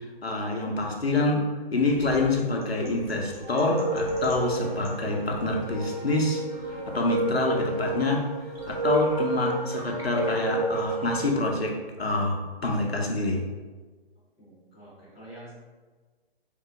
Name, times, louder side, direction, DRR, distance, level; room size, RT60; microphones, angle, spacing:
voice 1, 0.0-1.4 1.7-8.3 8.7-13.5, left 2 dB, 85° left, 1 dB, 0.7 m, -27 dB
sound 1, 1.8-11.0, equal, 80° right, 1.1 m, -47 dB
sound 2, 3.4-11.6, right 1 dB, 40° right, 0.7 m, -30 dB
voice 2, 14.4-15.5, right 1 dB, 5° left, -11 dB, 0.5 m, -47 dB
3.7 x 2.0 x 3.6 m, 1.4 s
figure-of-eight pair, 135°, 30 cm